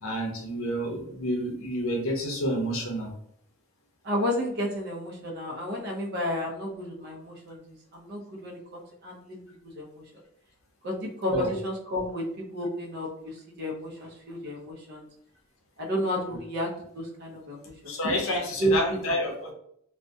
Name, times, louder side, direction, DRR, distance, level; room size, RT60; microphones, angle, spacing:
voice 1, 0.0-3.1 11.3-11.5 17.9-19.5, equal, 70° left, 0 dB, 0.6 m, -29 dB
voice 2, 4.0-9.4 9.7-10.0 10.8-12.2 12.5-15.1 15.8-17.9 18.6-18.8, equal, 50° right, -1 dB, 0.5 m, -31 dB
2.3 x 2.1 x 2.6 m, 0.70 s
head